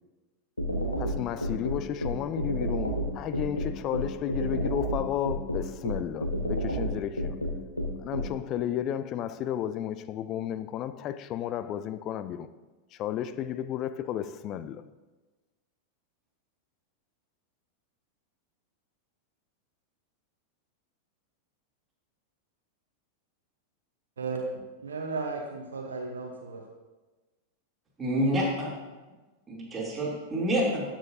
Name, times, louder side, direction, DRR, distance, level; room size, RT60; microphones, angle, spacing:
sound 1, 0.6-8.3, equal, 85° left, 1.1 m, -30 dB
voice 1, 1.0-7.4 8.0-12.5 12.9-14.8, left 10 dB, 35° left, 0.4 m, -33 dB
voice 2, 24.8-26.6, right 4 dB, 70° right, 0.9 m, -35 dB
voice 3, 28.0-28.7 29.5-30.8, equal, 15° right, 3.0 m, -27 dB
12.5 x 7.3 x 2.7 m
figure-of-eight pair, 90°, 0 cm